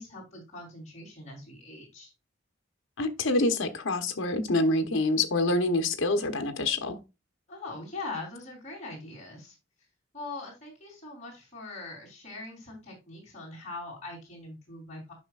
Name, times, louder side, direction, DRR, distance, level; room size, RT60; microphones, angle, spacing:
voice 1, 0.0-2.1 7.5-9.5 10.1-15.1, left 2 dB, 35° left, 3.5 m, -42 dB
voice 2, 3.0-7.0, left 2 dB, 80° left, 0.9 m, -26 dB
11.0 x 5.6 x 2.4 m
head